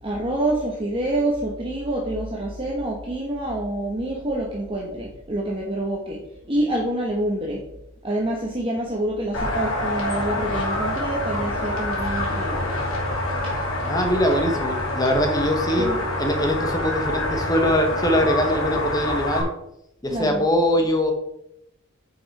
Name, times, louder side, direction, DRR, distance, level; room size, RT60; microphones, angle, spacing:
voice 1, 0.0-7.6 8.0-12.7 15.8-16.0 20.1-20.5, right 1 dB, 25° right, -2 dB, 1.2 m, -27 dB
sound 1, 9.3-19.4, left 1 dB, 75° left, 2.8 m, -26 dB
voice 2, 13.8-15.9 16.2-19.5 20.0-21.1, equal, 20° left, 4 dB, 1.3 m, -22 dB
9.3 x 6.0 x 4.2 m, 0.82 s
head